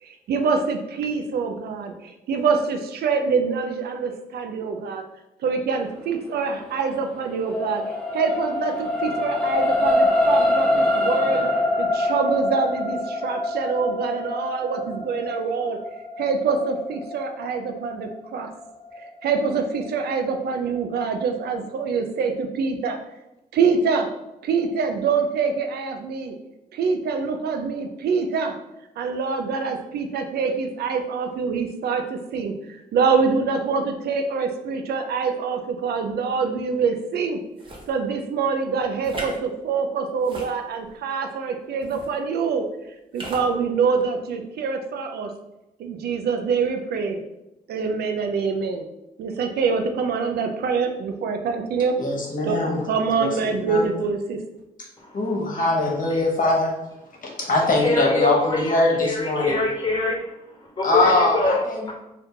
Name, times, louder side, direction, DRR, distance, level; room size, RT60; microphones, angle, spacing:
voice 1, 0.0-5.0 5.4-15.8 16.2-18.5 19.0-23.0 23.5-24.1 24.4-26.4 26.7-28.6 29.0-37.4 37.9-45.3 45.8-47.2 47.7-48.8 49.2-52.0 52.4-54.4, right 5 dB, 75° right, 5 dB, 0.4 m, -25 dB
sound 1, 6.7-19.2 19.8-19.9, left 1 dB, 5° left, 1.1 m, -24 dB
sound 2, 37.6-37.9 39.0-39.4 40.2-41.0 41.8-42.1 43.1-43.5, right 1 dB, 30° right, 1.0 m, -36 dB
voice 2, 52.0-53.9 55.1-56.7 57.2-59.6 60.8-61.9, left 2 dB, 55° left, -1 dB, 1.0 m, -22 dB
voice 3, 57.8-60.2 60.8-61.6, left 2 dB, 30° left, -1 dB, 1.3 m, -24 dB
2.7 x 2.4 x 3.6 m, 0.92 s
supercardioid pair, 55°, 16 cm